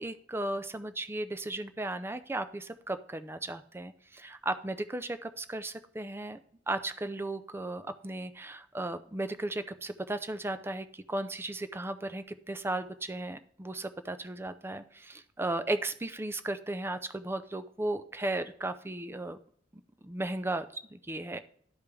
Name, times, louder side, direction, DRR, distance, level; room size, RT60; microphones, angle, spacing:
voice 1, 0.0-6.4 6.7-19.4 20.0-21.4, right 2 dB, 15° right, 11 dB, 0.4 m, -35 dB
12.0 x 5.0 x 3.4 m, 0.62 s
head